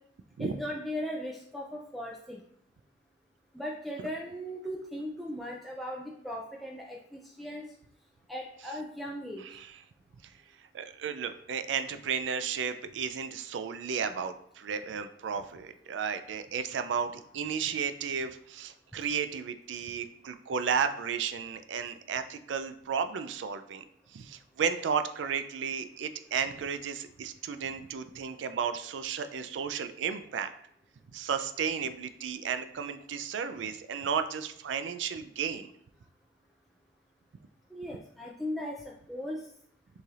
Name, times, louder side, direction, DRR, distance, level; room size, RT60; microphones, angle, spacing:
voice 1, 0.4-2.4 3.5-7.7 8.3-9.4 37.7-39.4, equal, ahead, -3 dB, 0.3 m, -38 dB
voice 2, 10.7-23.8 24.1-30.5 31.1-35.7, right 6 dB, 85° right, 10 dB, 0.4 m, -33 dB
6.6 x 3.2 x 2.4 m, 0.69 s
head